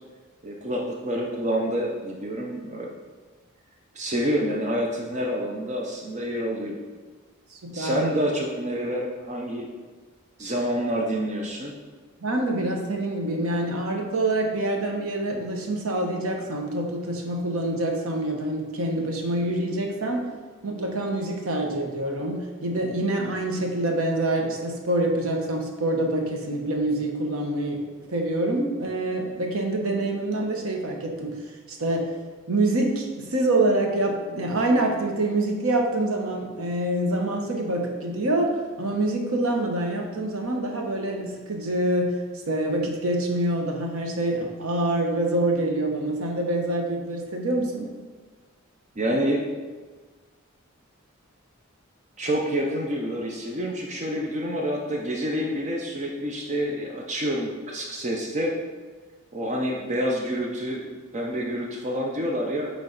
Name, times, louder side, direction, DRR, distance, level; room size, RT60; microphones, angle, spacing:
voice 1, 0.4-2.9 3.9-6.8 7.7-9.7 10.4-11.7 49.0-49.4 52.2-58.5 59.3-62.7, equal, 35° right, 0 dB, 0.6 m, -28 dB
voice 2, 7.5-8.1 12.2-20.3 20.6-27.8 28.1-32.1 32.5-42.1 42.5-47.9, right 1 dB, 85° right, 2 dB, 1.0 m, -26 dB
8.9 x 3.3 x 3.9 m, 1.4 s
head